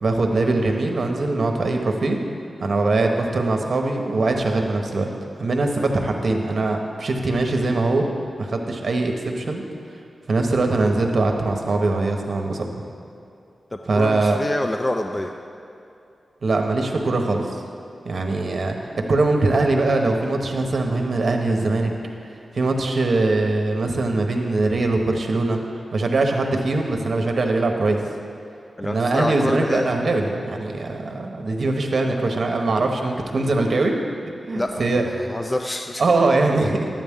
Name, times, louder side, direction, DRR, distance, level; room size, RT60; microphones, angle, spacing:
voice 1, 0.0-2.2 2.6-5.1 5.4-8.0 8.4-9.6 10.3-12.8 13.9-14.4 16.4-17.6 18.0-21.9 22.5-25.6 25.9-28.0 28.8-33.9 34.5-35.0 36.0-36.9, right 2 dB, 65° right, 3 dB, 1.0 m, -22 dB
voice 2, 13.7-15.3 28.8-30.0 34.5-36.0, left 1 dB, 25° left, 5 dB, 0.4 m, -27 dB
11.0 x 8.9 x 3.6 m, 2.5 s
cardioid pair, 70°, 0 cm